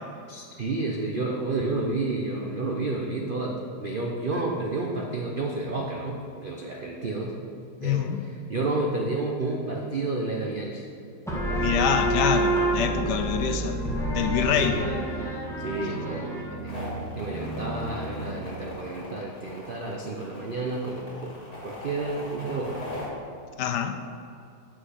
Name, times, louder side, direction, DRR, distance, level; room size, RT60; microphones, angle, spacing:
voice 1, 0.3-7.4 7.8-10.9 14.6-15.0 15.6-16.9 17.1-21.3 21.6-22.8, right 2 dB, 60° right, 0 dB, 0.5 m, -30 dB
voice 2, 7.8-8.2 11.6-13.8 14.1-14.8 23.6-24.0, left 8 dB, 75° left, 7 dB, 1.1 m, -25 dB
sound 1, 11.3-18.6, right 2 dB, ahead, 1.4 m, -29 dB
sound 2, 16.7-23.1, left 1 dB, 50° left, 2.8 m, -40 dB
7.7 x 6.2 x 6.3 m, 2.5 s
omnidirectional pair, 2.0 m